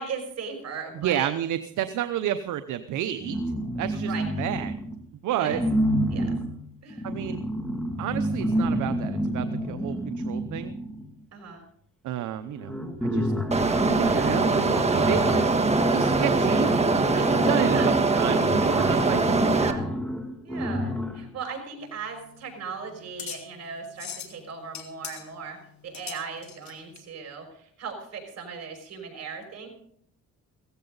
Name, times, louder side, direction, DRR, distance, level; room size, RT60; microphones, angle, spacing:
voice 1, 0.0-1.3 3.9-4.3 5.3-5.6 6.1-6.4 6.8-7.1 11.3-11.6 14.0-14.3 17.1-17.9 19.4-19.9 20.4-25.6 25.8-29.7, right 5 dB, 60° right, 3 dB, 5.9 m, -38 dB
voice 2, 0.9-3.4 3.8-4.7 5.2-5.6 7.0-7.4 8.0-10.7 12.0-12.7 13.0-13.3 13.9-15.6 15.9-16.7 17.3-19.5, right 11 dB, 80° right, 10 dB, 0.8 m, -30 dB
sound 1, 3.2-5.0 5.5-11.1 12.1-12.2 12.4-21.3, equal, 5° left, 2.3 m, -29 dB
sound 2, 13.5-19.7, right 3 dB, 20° right, 1.4 m, -23 dB
sound 3, 21.8-27.0, left 9 dB, 65° left, 2.4 m, -42 dB
16.5 x 15.0 x 4.0 m, 0.66 s
cardioid pair, 90°, 30 cm